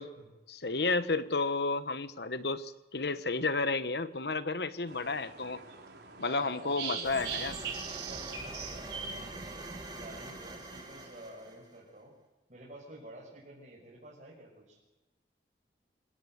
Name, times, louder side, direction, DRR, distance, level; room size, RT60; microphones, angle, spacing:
voice 1, 0.5-5.6 6.2-7.6, left 3 dB, 70° left, 12 dB, 1.2 m, -32 dB
sound 1, 4.9-9.9, right 6 dB, 75° right, 4.7 m, -41 dB
voice 2, 6.1-7.1 7.8-9.7 10.0-12.1 12.5-14.8, right 1 dB, 45° right, -5 dB, 6.4 m, -50 dB
sound 2, 7.0-11.8, right 2 dB, 25° right, 3.3 m, -44 dB
27.0 x 16.5 x 8.2 m, 1.1 s
head